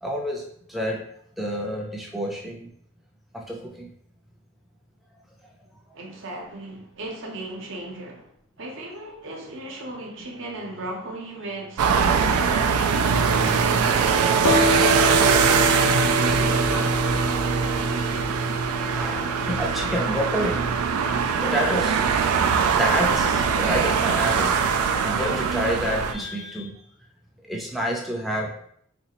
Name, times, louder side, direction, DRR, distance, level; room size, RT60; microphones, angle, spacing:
voice 1, 0.0-0.4 0.7-1.1 1.4-2.7 3.3-3.9 16.8-17.1 17.7-17.8 18.9-22.0 22.6-24.6 25.0-26.7 27.4-28.6, equal, ahead, 0.4 m, -29 dB
voice 2, 5.9-8.3 8.6-12.7 13.1-15.7, right 1 dB, 60° right, 0.8 m, -36 dB
sound 1, 11.8-26.1, right 6 dB, 90° right, 0.3 m, -22 dB
sound 2, 14.4-21.9, equal, 80° left, 0.7 m, -28 dB
4.1 x 2.4 x 2.9 m
head